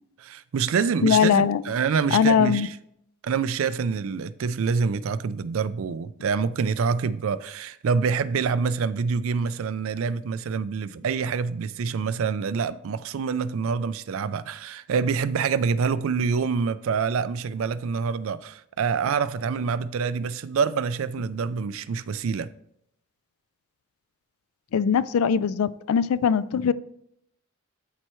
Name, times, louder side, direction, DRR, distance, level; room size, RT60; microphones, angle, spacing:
voice 1, 0.2-2.7 3.2-22.5, right 5 dB, 65° right, 0.4 m, -26 dB
voice 2, 1.0-1.6 2.1-2.7 24.7-26.7, left 7 dB, 75° left, 0.3 m, -21 dB
12.5 x 4.4 x 3.0 m
head